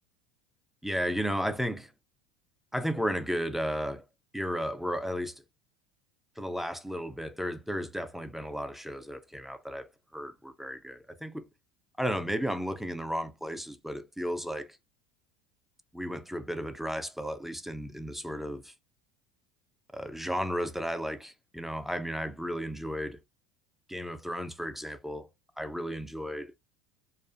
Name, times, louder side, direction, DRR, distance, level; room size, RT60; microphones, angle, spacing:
voice 1, 0.8-1.9 2.7-4.1 4.3-5.4 6.4-11.5 12.0-14.8 15.9-18.7 19.9-23.2 23.9-25.3 25.6-26.5, equal, ahead, 0.3 m, -34 dB
2.4 x 2.4 x 2.4 m
supercardioid pair, 95°, 16 cm